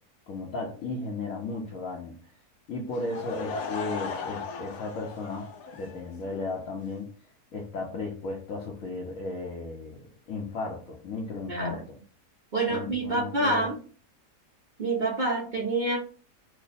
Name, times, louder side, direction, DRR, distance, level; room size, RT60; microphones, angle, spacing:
voice 1, 0.3-2.2 2.7-5.5 5.8-7.1 7.5-10.0 10.3-11.8 12.7-13.7, left 3 dB, 60° left, -3 dB, 1.1 m, -35 dB
Laughter / Crowd, 2.9-6.4, left 4 dB, 90° left, 1.2 m, -37 dB
voice 2, 11.5-11.8 12.5-13.8 14.8-16.0, right 2 dB, 65° right, -2 dB, 0.4 m, -27 dB
3.1 x 2.1 x 4.0 m, 0.39 s
omnidirectional pair, 1.7 m